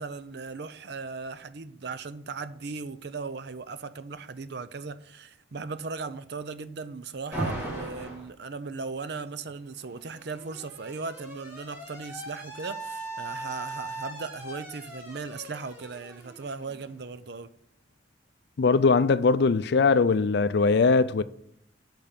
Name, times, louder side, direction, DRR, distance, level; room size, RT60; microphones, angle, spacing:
voice 1, 0.0-17.5, right 4 dB, 60° right, 0.6 m, -37 dB
Alarm, 7.3-8.3 9.5-17.2, right 2 dB, 15° right, 2.5 m, -39 dB
voice 2, 18.6-21.2, left 4 dB, 60° left, 0.4 m, -21 dB
8.6 x 5.7 x 5.9 m
head